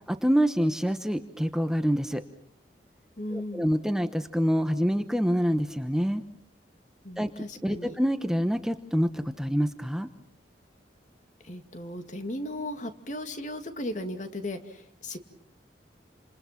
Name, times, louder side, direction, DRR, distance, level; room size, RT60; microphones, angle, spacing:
voice 1, 0.1-2.2 3.3-6.2 7.2-7.3 7.6-10.1, equal, 5° right, 8 dB, 1.0 m, -26 dB
voice 2, 3.2-3.8 7.0-8.0 11.4-15.2, left 1 dB, 45° left, 8 dB, 2.4 m, -36 dB
29.5 x 27.5 x 5.9 m, 0.64 s
head